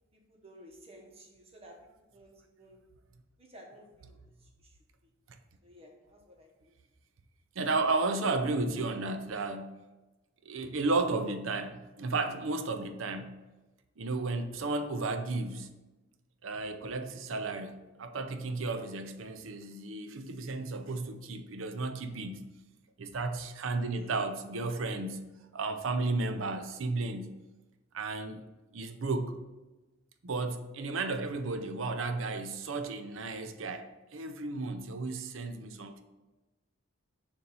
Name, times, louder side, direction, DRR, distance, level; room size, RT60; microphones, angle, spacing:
voice 1, 0.1-2.8 3.4-4.8 5.6-6.7 23.9-24.2, equal, 30° right, 0 dB, 1.0 m, -55 dB
voice 2, 7.6-9.8 10.4-13.4 14.0-15.7 16.4-22.5 23.0-25.3 25.5-27.4 27.9-28.4 28.7-29.4 30.2-36.0, right 3 dB, 90° right, 8 dB, 0.6 m, -33 dB
6.8 x 2.7 x 5.4 m, 1.1 s
head